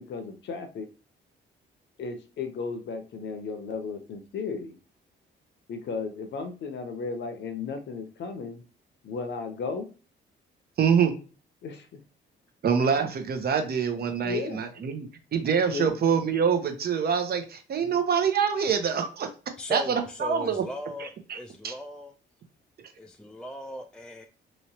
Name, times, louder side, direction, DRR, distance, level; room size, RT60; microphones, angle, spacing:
voice 1, 0.1-0.9 2.0-4.8 5.7-8.6 9.0-9.9 11.6-11.9 14.2-14.7 15.0-15.1 15.7-15.9 17.8-18.0, left 4 dB, 65° left, 0.8 m, -35 dB
voice 2, 10.8-11.1 12.6-15.1 15.3-19.3 19.7-20.6 21.0-21.4 21.6-21.7, right 7 dB, 50° right, 0.8 m, -25 dB
voice 3, 19.6-22.1 23.0-24.2, left 1 dB, 5° left, 0.4 m, -38 dB
3.0 x 3.0 x 2.8 m
cardioid pair, 90°, 20 cm